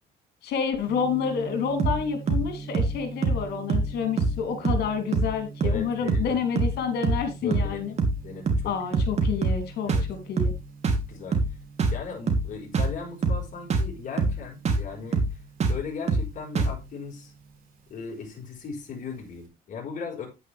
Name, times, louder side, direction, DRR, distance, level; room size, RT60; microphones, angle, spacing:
voice 1, 0.4-7.9 8.6-10.5, left 6 dB, 75° left, 3.3 m, -29 dB
Gong, 0.8-19.4, right 4 dB, 60° right, 5.7 m, -44 dB
sound 1, 1.8-2.0 2.3-2.5 2.7-3.0 3.2-3.4 3.7-3.9 4.2-4.4 4.6-4.9 5.1-5.3 5.6-5.8 6.1-6.3 6.6-6.8 7.0-7.3 7.5-7.7 8.0-8.2 8.5-8.7 8.9-9.6 9.9-10.1 10.4-10.6 10.8-11.1 11.3-11.5 11.8-12.0 12.3-12.5 12.7-13.0 13.2-13.4 13.7-13.9 14.2-14.4 14.7-14.9 15.1-15.3 15.6-15.8 16.1-16.3 16.6-16.8, right 3 dB, 40° right, 3.3 m, -24 dB
voice 2, 5.6-6.4 7.4-8.7 9.8-10.1 11.1-11.4 11.9-15.2 15.7-17.3 17.9-20.3, left 5 dB, 50° left, 5.1 m, -37 dB
9.8 x 9.7 x 3.5 m
cardioid pair, 110°, 17 cm